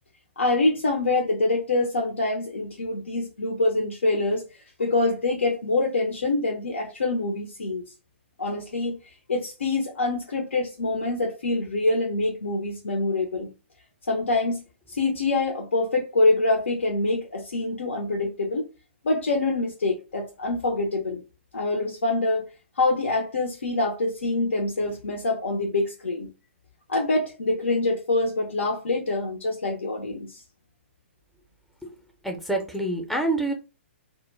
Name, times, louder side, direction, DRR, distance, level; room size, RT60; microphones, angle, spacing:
voice 1, 0.4-4.5 4.8-7.8 8.4-9.0 9.3-13.5 14.1-14.6 14.9-18.7 19.0-21.2 21.5-22.5 22.8-26.3 26.9-30.4, left 2 dB, 75° left, 0.6 m, -25 dB
voice 2, 32.2-33.5, right 2 dB, ahead, 0.5 m, -26 dB
2.2 x 2.1 x 3.1 m
figure-of-eight pair, 120°, 7 cm